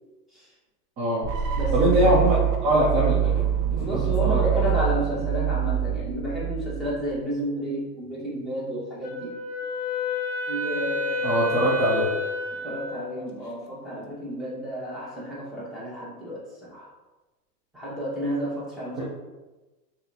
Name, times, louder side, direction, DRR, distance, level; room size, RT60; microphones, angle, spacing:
voice 1, 1.0-1.3 1.7-2.3 2.6-3.4 3.7-4.7 11.2-12.1 19.0-19.1, equal, 15° right, -7 dB, 0.3 m, -23 dB
sound 1, 1.2-7.2, right 9 dB, 55° right, 0.7 m, -25 dB
voice 2, 1.5-2.2 3.8-9.4 10.5-11.4 12.6-16.9 17.7-19.0, equal, ahead, -9 dB, 1.4 m, -31 dB
Wind instrument woodwind instrument, 9.0-13.1, left 3 dB, 40° left, 0.7 m, -29 dB
5.4 x 2.6 x 2.8 m, 1.1 s
supercardioid pair, 135°, 49 cm